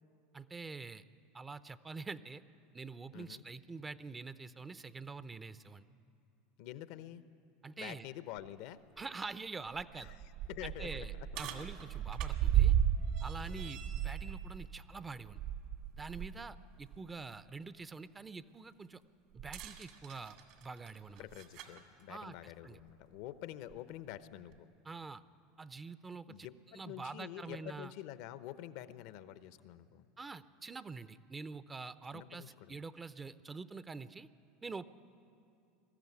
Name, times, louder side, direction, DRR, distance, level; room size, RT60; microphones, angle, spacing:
voice 1, 0.3-1.0 1.3-2.4 2.7-5.8 7.6-8.1 9.0-10.1 10.6-12.7 13.2-15.4 16.0-19.0 19.3-21.3 22.1-22.8 24.8-25.2 25.6-26.5 26.7-27.9 30.2-34.3 34.6-34.8, right 4 dB, 20° right, 14 dB, 0.6 m, -46 dB
voice 2, 3.1-3.4 6.6-7.3 7.8-8.8 10.0-10.1 10.5-11.7 13.5-13.8 16.2-16.6 21.2-24.7 26.3-30.1 32.1-32.8, left 13 dB, 65° left, 14 dB, 0.8 m, -48 dB
sound 1, 8.4-8.5 9.0-9.1 9.7-16.4 16.8-17.0 19.4-21.8 22.8-22.9 23.7-23.8, right 10 dB, 60° right, 2.1 m, -35 dB
20.5 x 14.0 x 9.6 m, 2.7 s
hypercardioid pair, 85°, 0 cm